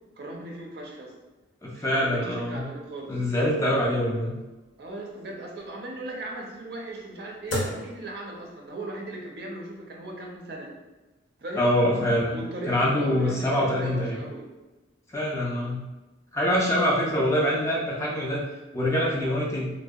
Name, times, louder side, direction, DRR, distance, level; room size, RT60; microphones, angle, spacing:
voice 1, 0.2-1.1 1.7-3.1 4.8-10.7 11.4-11.7 12.3-14.4, right 2 dB, 55° right, 0 dB, 0.4 m, -38 dB
voice 2, 1.6-2.6 3.1-4.3 11.6-12.4 12.7-14.2 15.1-15.8 16.3-18.4 18.7-19.7, left 1 dB, 15° left, -4 dB, 0.3 m, -24 dB
sound 1, 2.2-8.9, left 1 dB, 70° left, 0.6 m, -39 dB
2.6 x 2.1 x 2.3 m, 1.1 s
head